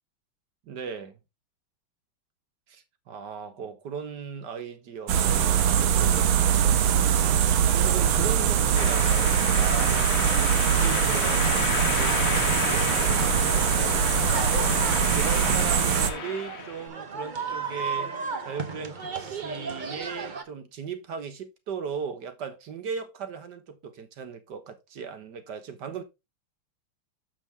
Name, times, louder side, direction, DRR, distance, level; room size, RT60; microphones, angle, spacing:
voice 1, 0.6-1.2 2.7-10.1 10.6-14.6 15.1-18.1 18.4-26.0, right 6 dB, 60° right, 1.7 m, -38 dB
sound 1, 5.1-16.1, right 8 dB, 80° right, 1.7 m, -22 dB
Space Dust, 8.8-16.9, left 7 dB, 50° left, 1.2 m, -32 dB
sound 2, 10.4-20.4, right 4 dB, 35° right, 0.8 m, -36 dB
7.0 x 6.5 x 3.5 m
omnidirectional pair, 2.2 m